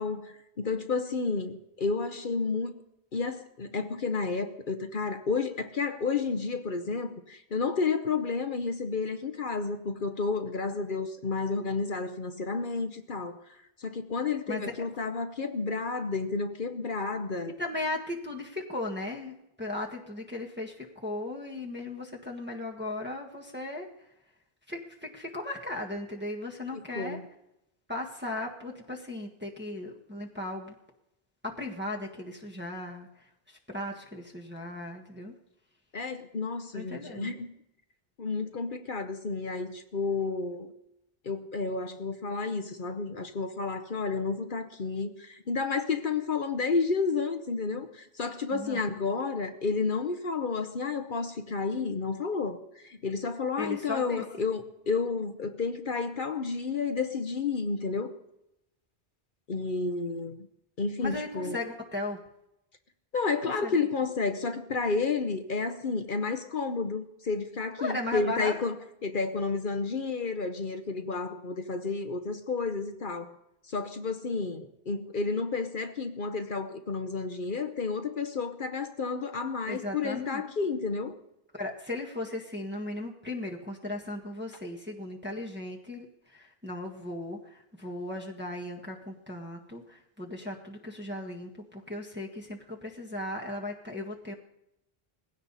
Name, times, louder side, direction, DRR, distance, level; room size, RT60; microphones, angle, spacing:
voice 1, 0.0-2.7 3.1-13.4 13.8-17.5 26.7-27.2 35.9-37.5 38.2-40.7 41.2-58.1 59.5-60.5 60.8-61.6 63.1-68.7 69.0-73.3 73.7-81.1, left 4 dB, 55° left, 8 dB, 1.1 m, -31 dB
voice 2, 14.5-14.9 17.6-23.9 24.7-27.2 27.9-30.8 31.4-35.3 36.7-37.3 48.5-48.8 53.6-54.2 61.0-62.2 63.6-63.8 67.8-68.5 79.7-80.4 81.5-94.3, left 2 dB, 10° right, -1 dB, 1.6 m, -37 dB
20.0 x 16.0 x 4.1 m, 0.84 s
omnidirectional pair, 1.0 m